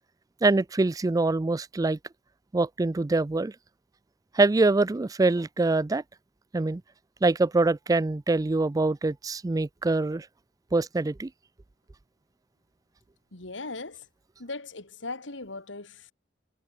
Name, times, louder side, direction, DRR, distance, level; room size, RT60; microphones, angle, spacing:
voice 1, 0.4-2.0 2.5-3.5 4.3-6.0 6.5-6.8 7.2-10.3 10.7-11.3, right 3 dB, 20° right, 0.4 m, -24 dB
voice 2, 13.3-14.1 14.4-16.1, left 3 dB, 85° left, 2.9 m, -38 dB
head